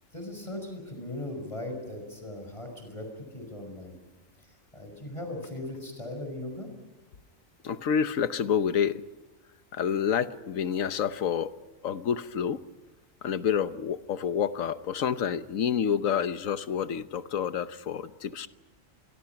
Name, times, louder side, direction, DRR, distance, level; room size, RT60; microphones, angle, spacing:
voice 1, 0.1-3.1 3.3-4.0 4.7-6.7, left 1 dB, 25° left, 4 dB, 5.8 m, -38 dB
voice 2, 7.6-9.0 9.7-11.5 11.8-12.6 13.2-18.5, left 8 dB, 90° left, 12 dB, 1.3 m, -28 dB
26.5 x 22.5 x 5.9 m, 1.2 s
omnidirectional pair, 1.4 m